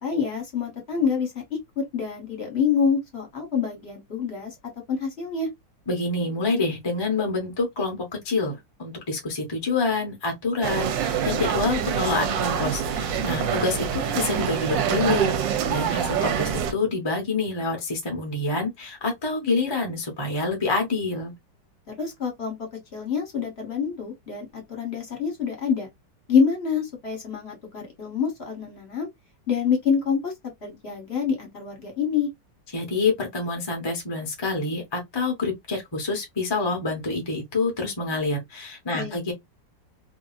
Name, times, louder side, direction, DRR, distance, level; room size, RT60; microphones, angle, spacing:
voice 1, 0.0-1.3 1.8-4.5 4.9-5.5 13.4-13.6 21.9-22.6 22.9-25.9 26.3-29.1 29.5-30.3 30.6-32.3 38.9-39.2, left 6 dB, 40° left, 1.2 m, -26 dB
voice 2, 5.9-21.3 32.7-39.3, left 3 dB, 25° left, 0.6 m, -27 dB
sound 1, 10.6-16.7, right 8 dB, 85° right, 1.3 m, -25 dB
2.8 x 2.7 x 2.4 m
omnidirectional pair, 2.0 m